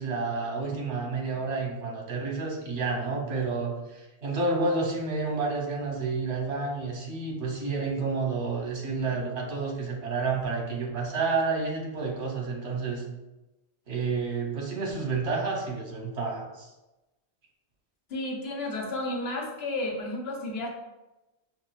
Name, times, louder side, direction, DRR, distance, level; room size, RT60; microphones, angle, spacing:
voice 1, 0.0-13.0 13.9-16.7, right 4 dB, 85° right, -1 dB, 1.2 m, -30 dB
voice 2, 18.1-20.7, left 2 dB, 65° left, -1 dB, 1.0 m, -32 dB
6.1 x 2.2 x 2.3 m, 1.0 s
omnidirectional pair, 1.2 m